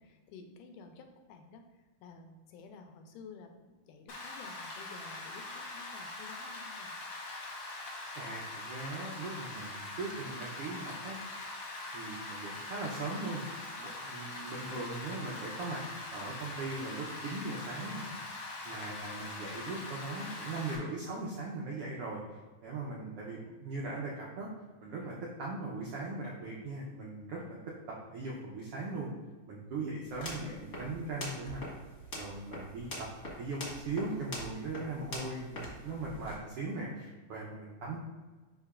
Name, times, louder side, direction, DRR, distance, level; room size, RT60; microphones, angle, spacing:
voice 1, 0.0-6.9 14.5-14.8 30.2-30.6 37.9-38.0, left 4 dB, 85° left, 5 dB, 2.2 m, -53 dB
Rain, 4.1-20.8, left 2 dB, 55° left, 1.7 m, -43 dB
voice 2, 8.1-11.2 11.9-13.4 13.8-15.8 16.1-18.1 18.6-22.2 22.6-24.5 24.8-27.4 27.9-29.1 29.5-31.6 32.1-33.1 33.3-38.0, right 3 dB, 85° right, -3 dB, 1.3 m, -39 dB
sound 1, 30.0-36.3, left 1 dB, 35° left, 1.6 m, -44 dB
11.0 x 3.7 x 2.4 m, 1.3 s
omnidirectional pair, 3.7 m